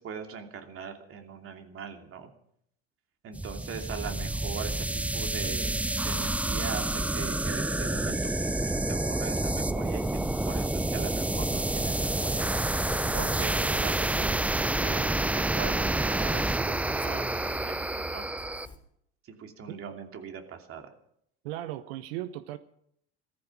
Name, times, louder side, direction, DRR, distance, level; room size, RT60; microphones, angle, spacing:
voice 1, 0.0-2.3 3.2-5.7 6.0-12.5 13.1-18.3 19.4-20.9, right 7 dB, 45° right, 2.7 m, -40 dB
sound 1, 3.3-18.7, right 2 dB, 5° right, 0.5 m, -28 dB
Ocean, 9.8-18.8, left 2 dB, 15° left, 3.5 m, -48 dB
voice 2, 21.4-22.6, right 14 dB, 70° right, 0.9 m, -36 dB
15.0 x 14.0 x 6.0 m
hypercardioid pair, 75°, 31 cm